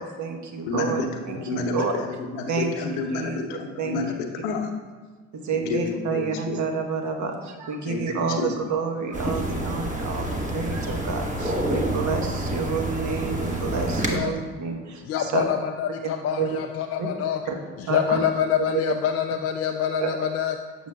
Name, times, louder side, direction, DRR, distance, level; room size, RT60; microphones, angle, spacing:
voice 1, 0.0-1.9 2.5-3.4 3.8-4.0 5.3-10.3 10.5-15.4 16.0-16.6 17.0-17.1 17.5-17.6 17.9-18.2 18.7-18.8 20.0-20.1, right 5 dB, 45° right, 3 dB, 1.1 m, -29 dB
voice 2, 0.7-4.7 5.5-6.6 7.9-8.5, left 4 dB, 75° left, 4 dB, 0.8 m, -30 dB
sound 1, 9.1-14.2, right 1 dB, 20° right, 1.1 m, -28 dB
voice 3, 15.0-17.4 17.8-20.6, left 9 dB, 40° left, 4 dB, 0.4 m, -26 dB
6.9 x 6.4 x 2.2 m, 1.5 s
hypercardioid pair, 65°, 40 cm